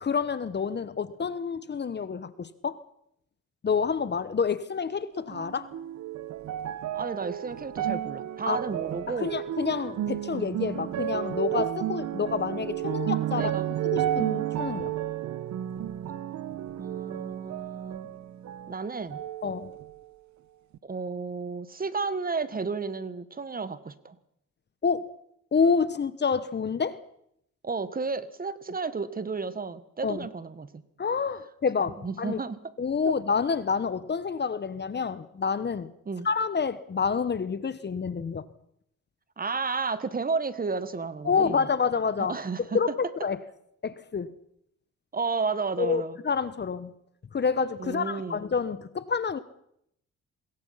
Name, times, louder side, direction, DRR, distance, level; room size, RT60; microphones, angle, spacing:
voice 1, 0.0-2.8 3.6-5.7 8.5-8.6 9.1-13.5 13.8-14.9 19.4-19.7 24.8-25.1 25.5-27.0 30.0-30.3 31.0-32.4 32.8-35.9 36.2-38.5 41.2-43.4 43.8-44.3 45.8-46.9 47.3-49.4, left 5 dB, 35° left, 15 dB, 1.2 m, -28 dB
sound 1, 5.3-18.8 19.1-20.1 20.7-20.8, right 12 dB, 65° right, 1.1 m, -32 dB
voice 2, 6.9-9.4 13.3-13.7 16.8-18.1 18.7-19.2 20.8-24.2 27.6-30.8 32.0-32.6 33.0-33.1 36.1-36.3 39.4-41.7 42.2-42.8 45.1-46.2 47.8-48.4, right 4 dB, 30° right, 14 dB, 1.5 m, -32 dB
25.5 x 21.5 x 5.8 m, 0.73 s
cardioid pair, 90°, 30 cm